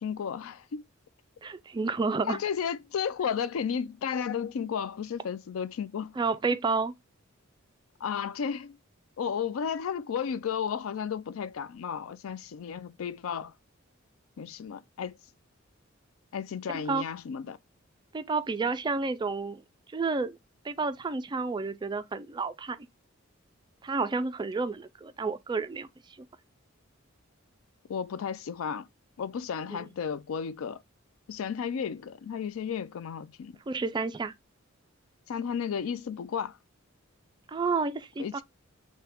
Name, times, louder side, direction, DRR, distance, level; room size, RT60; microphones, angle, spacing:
voice 1, 0.0-0.8 2.3-6.1 8.0-8.8 9.2-13.5 14.4-15.2 16.3-17.6 27.9-28.9 29.2-30.8 31.3-33.6 35.3-36.6 38.2-38.4, left 7 dB, 90° left, 0.4 m, -33 dB
voice 2, 1.4-2.4 6.2-6.9 16.9-17.0 18.1-19.6 19.9-20.4 20.6-22.8 23.8-25.9 29.7-29.8 33.7-34.3 37.5-38.4, right 4 dB, 20° right, 0.3 m, -30 dB
5.7 x 2.2 x 3.4 m
head